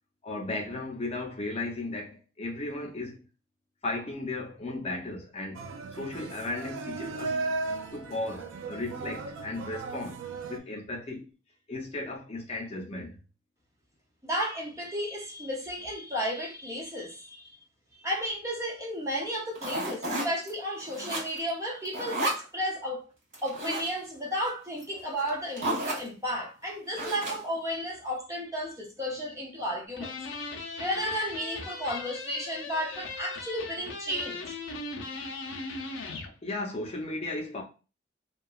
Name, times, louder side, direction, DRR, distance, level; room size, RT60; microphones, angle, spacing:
voice 1, 0.2-3.2 3.8-5.7 5.9-7.4 7.9-10.2 10.5-11.3 11.7-13.2 24.9-25.1 36.4-37.6, left 2 dB, 35° left, 0.6 m, -35 dB
sound 1, 5.6-10.6, right 3 dB, 90° right, 0.3 m, -36 dB
voice 2, 14.2-17.5 17.9-23.0 23.4-30.2 30.8-34.6, equal, 15° right, 0.5 m, -33 dB
sound 2, 19.5-20.5 20.8-21.5 21.8-22.4 23.3-23.9 24.8-24.9 25.2-25.3 25.6-26.1 26.9-27.6, right 1 dB, 45° right, 1.4 m, -32 dB
sound 3, 30.0-36.3, left 3 dB, 80° left, 0.5 m, -38 dB
2.7 x 2.3 x 2.3 m
head